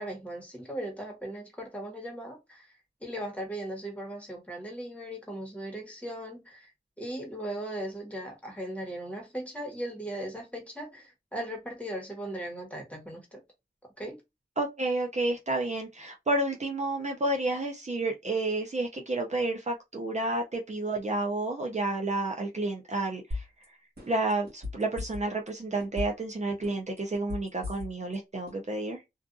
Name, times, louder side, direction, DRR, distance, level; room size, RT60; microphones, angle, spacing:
voice 1, 0.0-6.7 7.0-13.4 14.0-14.2, right 1 dB, 10° left, 1.2 m, -38 dB
voice 2, 14.6-23.4 24.1-29.0, right 2 dB, 45° right, 0.6 m, -30 dB
sound 1, 23.3-23.7 24.0-25.5 25.8-26.3 26.6-28.2 28.5-28.6, left 3 dB, 70° right, 1.3 m, -36 dB
2.5 x 2.3 x 2.5 m
wide cardioid pair, 85°, 17 cm